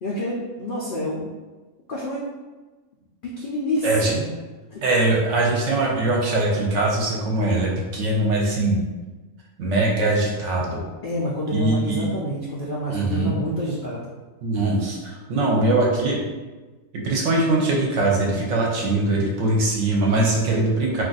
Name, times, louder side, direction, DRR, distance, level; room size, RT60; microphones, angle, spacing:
voice 1, 0.0-1.3 1.9-2.2 3.2-4.3 4.7-4.9 11.0-14.1, equal, 70° left, -5 dB, 0.5 m, -28 dB
voice 2, 3.8-4.1 4.8-8.8 9.6-10.8 11.5-12.1 12.9-13.3 14.4-16.2 16.9-21.0, right 2 dB, 65° right, -2 dB, 0.9 m, -21 dB
2.5 x 2.4 x 3.8 m, 1.2 s
omnidirectional pair, 1.5 m